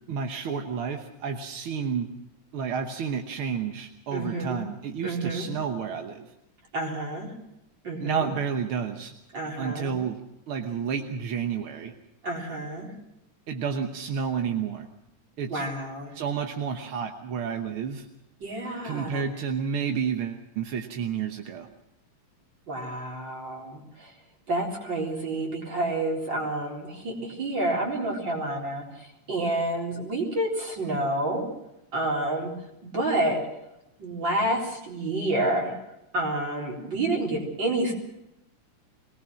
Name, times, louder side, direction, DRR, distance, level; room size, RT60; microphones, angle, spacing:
voice 1, 0.1-2.1 2.5-6.3 8.0-9.1 9.6-10.2 10.5-11.9 13.5-14.9 15.4-15.7 16.1-18.1 18.8-21.7, right 6 dB, 60° right, 5 dB, 1.6 m, -30 dB
voice 2, 4.1-4.6 5.0-5.5 6.7-7.3 7.8-8.3 9.3-10.0 12.2-12.9 15.5-16.1 18.4-19.2 22.7-24.1 24.5-31.4 31.9-32.5 32.8-33.4 34.0-35.8 36.1-37.9, right 1 dB, 35° right, 0 dB, 4.5 m, -29 dB
23.5 x 18.5 x 6.2 m, 0.88 s
omnidirectional pair, 3.5 m